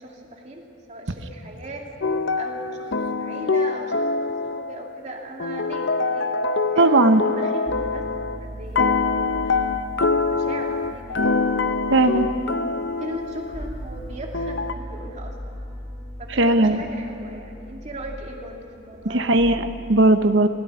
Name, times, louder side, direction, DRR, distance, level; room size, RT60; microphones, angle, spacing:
voice 1, 0.0-2.0 2.4-6.3 6.7-7.0 7.4-9.8 10.2-12.2 13.0-15.5 16.2-19.3, right 1 dB, 35° right, 0 dB, 2.5 m, -38 dB
sound 1, 2.0-5.0 5.4-8.4 8.7-13.7 14.3-14.7, left 3 dB, 65° left, 0.8 m, -24 dB
voice 2, 6.8-7.2 11.9-12.2 16.3-16.8 19.1-20.5, right 2 dB, 70° right, 9 dB, 1.0 m, -17 dB
sound 2, 7.7-19.4, equal, 25° left, 6.5 m, -39 dB
17.0 x 16.5 x 9.5 m, 2.7 s
head